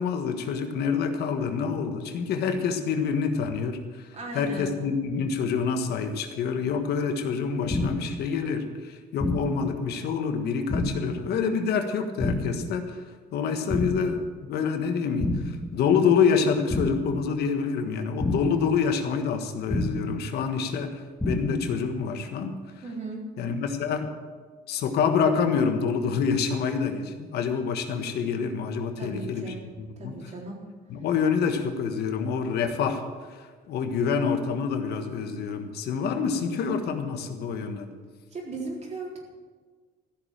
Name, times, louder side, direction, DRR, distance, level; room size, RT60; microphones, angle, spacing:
voice 1, 0.0-4.1 4.3-13.0 13.3-22.5 23.4-24.1 24.7-30.1 30.9-33.0 33.3-37.9, left 6 dB, 75° left, 6 dB, 1.5 m, -27 dB
voice 2, 4.1-4.7 22.8-23.2 29.0-29.6 30.0-30.6 38.3-39.2, right 2 dB, 40° right, -1 dB, 3.9 m, -36 dB
sound 1, 7.7-8.2 9.2-9.7 10.7-11.2 12.2-12.7 13.7-14.2 15.2-15.7 16.7-17.2 18.2-18.7 19.7-20.2 21.2-21.7, left 1 dB, 5° left, 2.0 m, -28 dB
15.0 x 6.7 x 9.0 m, 1.5 s
cardioid pair, 110°, 17 cm